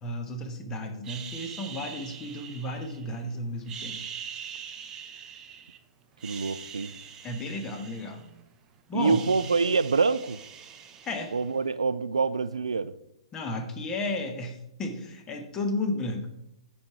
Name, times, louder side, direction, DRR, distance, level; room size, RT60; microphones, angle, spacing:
voice 1, 0.0-4.0 7.2-8.2 8.9-9.2 11.0-11.3 13.3-16.3, left 2 dB, 20° left, 5 dB, 1.1 m, -33 dB
sound 1, 1.0-3.2 3.6-5.8 6.1-8.5 8.8-11.7, right 8 dB, 20° right, 0.6 m, -43 dB
voice 2, 6.2-6.9 8.9-10.4 11.3-12.9, right 4 dB, 70° right, 16 dB, 0.3 m, -26 dB
9.3 x 5.2 x 4.6 m, 0.83 s
figure-of-eight pair, 115°, 3 cm